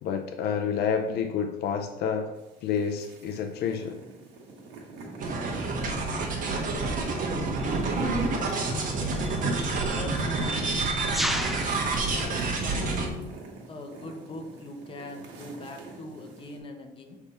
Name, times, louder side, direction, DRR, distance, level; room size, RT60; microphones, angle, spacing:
voice 1, 0.0-2.3 2.6-4.0, left 6 dB, 75° left, 6 dB, 0.5 m, -29 dB
sound 1, 2.3-16.6, right 3 dB, 90° right, 1.5 m, -48 dB
sound 2, 5.2-13.1, right 3 dB, 50° right, 1.2 m, -28 dB
sound 3, 7.6-7.8 8.8-13.0, right 1 dB, ahead, 0.4 m, -35 dB
voice 2, 9.9-10.8 11.7-13.3 13.7-17.2, left 2 dB, 30° left, 4 dB, 1.0 m, -42 dB
6.8 x 3.5 x 4.2 m, 0.99 s
cardioid pair, 110°, 17 cm